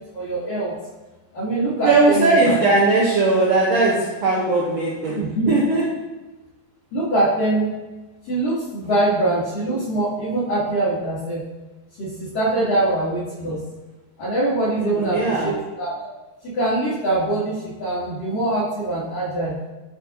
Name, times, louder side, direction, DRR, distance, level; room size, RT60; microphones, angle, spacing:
voice 1, 0.1-0.7 1.3-2.5 5.1-5.5 6.9-7.7 8.3-11.4 12.0-13.6 14.2-15.9 16.4-19.5, right 2 dB, 50° left, -12 dB, 3.8 m, -23 dB
voice 2, 1.8-5.2 5.5-5.8 14.8-15.5, right 3 dB, 80° right, -5 dB, 1.5 m, -19 dB
12.0 x 4.3 x 2.8 m, 1.1 s
omnidirectional pair, 4.6 m